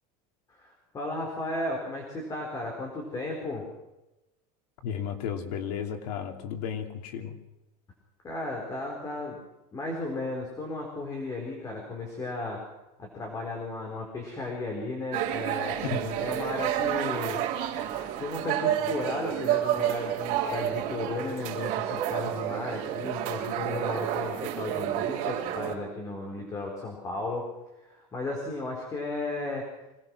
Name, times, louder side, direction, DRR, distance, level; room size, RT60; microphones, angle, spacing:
voice 1, 0.6-3.6 8.2-9.4 9.7-12.6 13.0-17.4 18.2-27.5 27.8-29.7, left 2 dB, 15° left, 0 dB, 4.2 m, -34 dB
voice 2, 4.8-7.4 15.8-16.1, left 7 dB, 75° left, 4 dB, 3.0 m, -34 dB
sound 1, 15.1-25.7, right 11 dB, 40° right, 3.8 m, -30 dB
25.5 x 19.0 x 6.2 m, 0.99 s
supercardioid pair, 175°, 20 cm